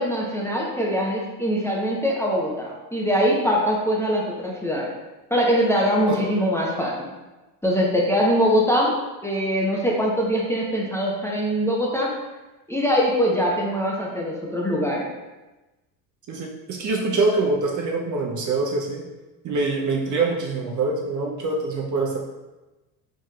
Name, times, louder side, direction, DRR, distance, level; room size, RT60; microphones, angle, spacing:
voice 1, 0.0-4.9 5.3-7.1 7.6-8.9 9.2-12.1 12.7-15.1, equal, 5° left, -4 dB, 0.8 m, -22 dB
voice 2, 16.3-19.0 19.4-22.2, right 3 dB, 35° right, -1 dB, 0.8 m, -24 dB
4.7 x 4.3 x 2.4 m, 1.1 s
hypercardioid pair, 75°, 50 cm